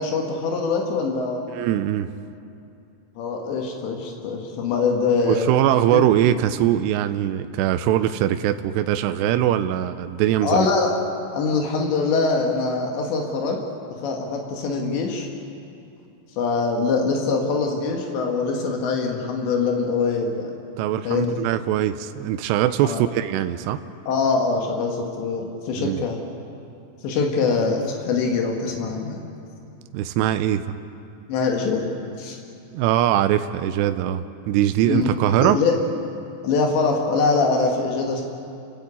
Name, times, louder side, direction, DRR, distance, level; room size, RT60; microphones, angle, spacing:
voice 1, 0.0-1.4 3.2-5.5 5.9-6.1 10.4-11.0 11.3-13.6 14.0-15.3 16.4-20.5 21.1-21.3 22.8-23.0 24.1-26.2 27.0-29.3 31.3-31.9 32.2-32.4 34.9-35.1 35.4-35.7 36.4-38.3, left 4 dB, 90° left, 1 dB, 4.2 m, -23 dB
voice 2, 1.5-2.1 5.2-10.7 20.8-23.8 25.8-26.0 29.9-30.6 32.7-35.6, right 12 dB, 80° right, 10 dB, 2.8 m, -21 dB
29.5 x 15.0 x 8.5 m, 2.6 s
omnidirectional pair, 4.9 m